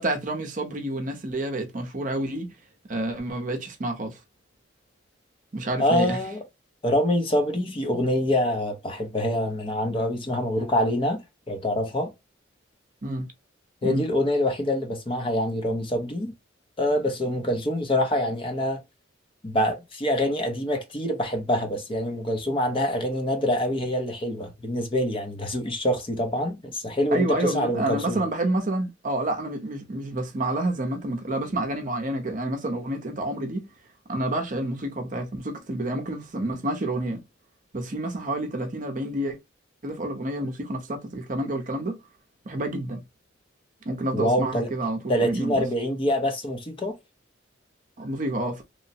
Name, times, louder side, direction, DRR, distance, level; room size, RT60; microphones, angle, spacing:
voice 1, 0.0-2.5 2.9-4.2 5.5-6.2 13.0-13.2 13.8-14.0 27.1-33.7 34.1-37.2 37.7-39.4 39.8-42.0 42.5-43.0 43.9-45.6 48.0-48.6, right 1 dB, 40° right, 0.6 m, -29 dB
voice 2, 5.8-6.4 6.8-11.2 11.5-12.1 13.8-16.3 16.8-18.8 19.4-28.2 44.1-44.7 45.1-47.0, left 1 dB, 25° left, 0.5 m, -25 dB
3.0 x 2.0 x 2.6 m
head